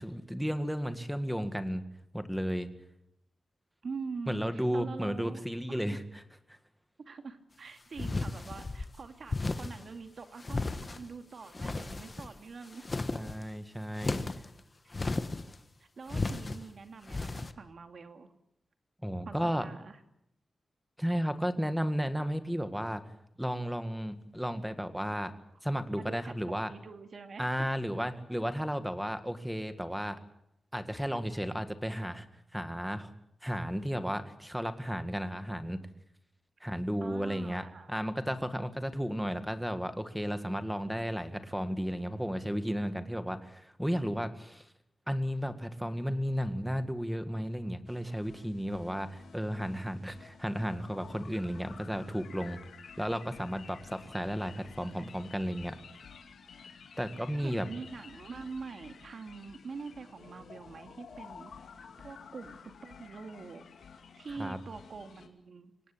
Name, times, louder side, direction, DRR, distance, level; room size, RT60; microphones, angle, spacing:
voice 1, 0.0-1.8 2.1-2.7 4.3-6.0 6.5-6.6 13.1-14.2 19.0-19.6 21.0-23.0 23.4-25.3 25.6-26.7 27.4-30.2 30.7-32.3 32.5-33.1 33.4-35.8 36.6-44.7 45.1-52.6 53.0-55.8 57.0-57.7 64.4-64.6, equal, ahead, 9 dB, 1.9 m, -33 dB
voice 2, 3.8-6.0 7.0-12.9 14.8-14.9 15.8-18.3 19.3-20.0 25.9-27.7 37.0-37.9 57.3-61.5 61.8-63.6 64.2-65.9, right 4 dB, 55° right, 7 dB, 2.5 m, -44 dB
sound 1, 8.0-8.9 9.3-9.9 10.4-11.1 11.5-12.4 12.7-13.4 14.0-14.5 14.9-15.6 16.1-16.6 17.1-17.5, left 3 dB, 30° left, 1.3 m, -34 dB
sound 2, 47.9-65.3, left 6 dB, 90° left, 2.7 m, -52 dB
24.5 x 18.5 x 8.6 m, 0.79 s
wide cardioid pair, 120°, 0 cm